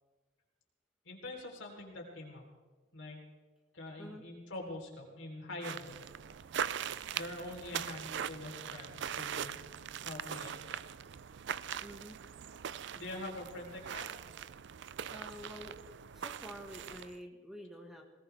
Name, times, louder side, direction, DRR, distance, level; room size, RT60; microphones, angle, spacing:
voice 1, 1.1-2.4 2.9-3.2 3.7-6.0 7.1-9.6 10.0-10.8 13.0-14.0, left 2 dB, 65° left, 0 dB, 3.8 m, -44 dB
sound 1, 5.6-17.2, right 8 dB, 60° right, 0.4 m, -41 dB
voice 2, 11.8-12.2 15.1-15.8 16.1-18.0, equal, ahead, 1 dB, 1.5 m, -48 dB
20.5 x 18.5 x 3.5 m, 1.3 s
head